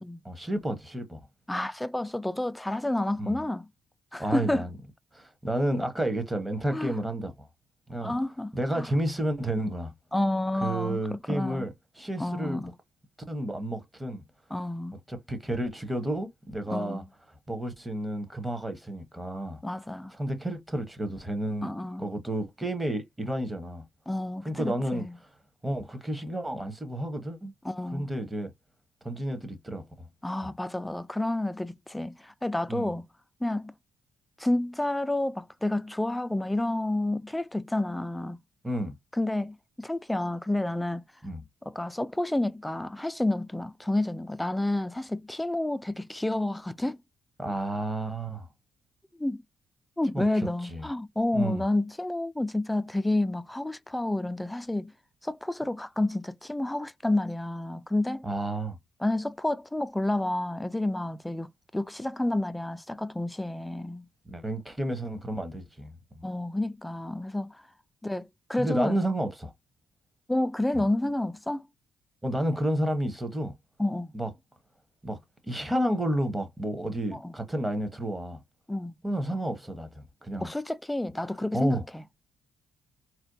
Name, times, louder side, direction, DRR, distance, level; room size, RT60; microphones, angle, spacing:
voice 1, 0.2-1.2 3.2-3.4 4.2-4.7 5.1-7.5 7.9-8.1 8.5-9.9 10.6-12.7 13.3-14.2 15.1-17.0 17.5-19.6 20.1-21.7 22.0-23.8 24.4-25.1 25.6-27.5 27.9-28.5 29.0-29.9 30.4-30.5 32.7-32.9 38.6-38.9 41.2-41.4 47.4-48.5 50.1-50.9 51.3-51.6 58.2-58.8 64.3-65.9 68.5-69.5 72.2-73.5 74.1-74.3 75.0-75.2 75.4-78.4 79.0-80.5 81.5-81.8, right 1 dB, 10° right, 1.0 m, -31 dB
voice 2, 1.5-3.7 4.1-4.7 6.7-7.0 8.0-8.9 10.1-11.6 12.2-12.7 14.5-15.0 16.7-17.1 19.6-20.1 21.6-22.1 24.1-25.1 27.6-28.1 30.2-33.1 33.4-33.7 34.4-38.4 39.2-41.0 41.7-47.0 49.2-49.4 50.0-54.9 55.2-58.3 59.0-64.1 66.2-67.6 68.0-69.0 70.3-71.6 73.8-74.1 77.1-77.3 78.7-78.9 80.4-82.0, left 1 dB, 5° left, 0.3 m, -30 dB
4.2 x 2.2 x 2.6 m
cardioid pair, 90°, 0 cm